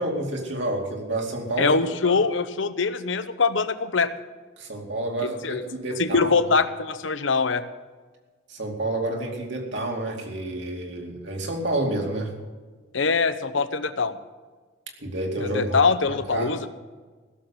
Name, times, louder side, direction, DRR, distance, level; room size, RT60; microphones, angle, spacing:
voice 1, 0.0-1.8 2.0-2.2 4.6-6.4 8.5-12.3 15.0-15.7 16.0-16.5, right 1 dB, 70° right, 1 dB, 2.6 m, -29 dB
voice 2, 1.6-4.1 5.2-5.6 6.0-7.6 12.9-14.2 15.4-16.7, left 4 dB, 80° left, 12 dB, 0.8 m, -23 dB
16.0 x 7.1 x 7.3 m, 1.4 s
head